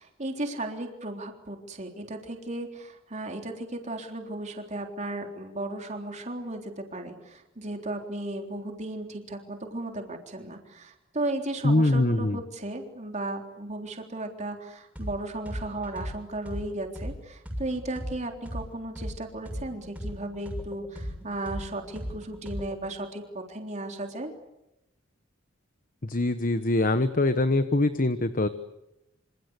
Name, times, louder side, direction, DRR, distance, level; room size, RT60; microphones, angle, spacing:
voice 1, 0.0-24.3, right 2 dB, 35° right, 3 dB, 3.7 m, -35 dB
voice 2, 11.6-12.4 26.0-28.5, left 2 dB, 40° left, 10 dB, 1.1 m, -23 dB
sound 1, 15.0-15.1 15.5-19.1 19.5-22.9, equal, 5° right, 6.6 m, -36 dB
27.0 x 27.0 x 8.2 m, 0.92 s
head